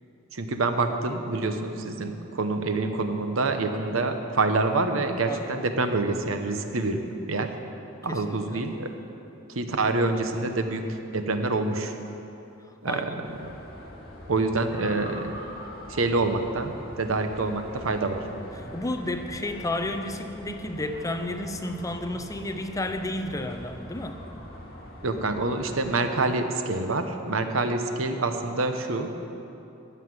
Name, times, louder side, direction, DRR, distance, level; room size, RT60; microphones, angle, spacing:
voice 1, 0.3-7.0 7.3-7.5 8.0-8.9 9.5-12.0 12.8-13.5 14.3-15.3 15.9-18.2 25.0-29.3, right 3 dB, 70° right, 7 dB, 1.0 m, -27 dB
voice 2, 8.1-8.6 12.9-13.0 18.6-24.2, left 1 dB, 15° left, 7 dB, 0.6 m, -32 dB
sound 1, 13.2-25.8, left 1 dB, 50° left, 2.4 m, -43 dB
15.0 x 5.8 x 9.6 m, 2.9 s
head